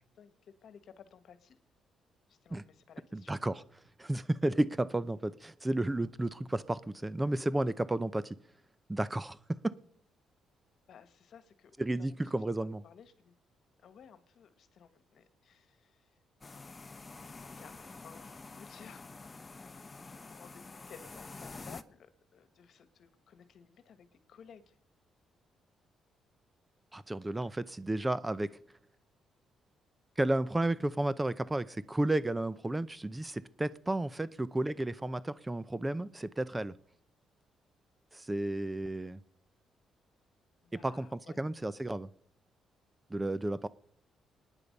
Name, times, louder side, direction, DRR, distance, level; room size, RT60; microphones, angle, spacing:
voice 1, 0.1-1.6 2.3-3.4 10.9-12.3 12.6-13.4 13.8-16.1 17.5-19.6 20.0-24.8 40.6-41.4, left 7 dB, 65° left, 12 dB, 1.5 m, -56 dB
voice 2, 3.1-3.6 4.0-8.4 8.9-9.7 11.8-12.8 26.9-28.6 30.2-36.7 38.1-39.2 40.8-42.1 43.1-43.7, right 1 dB, 15° right, 17 dB, 0.6 m, -32 dB
sound 1, 16.4-21.8, left 3 dB, 25° left, 0.8 m, -48 dB
23.5 x 10.0 x 5.4 m, 0.70 s
cardioid pair, 90°, 0 cm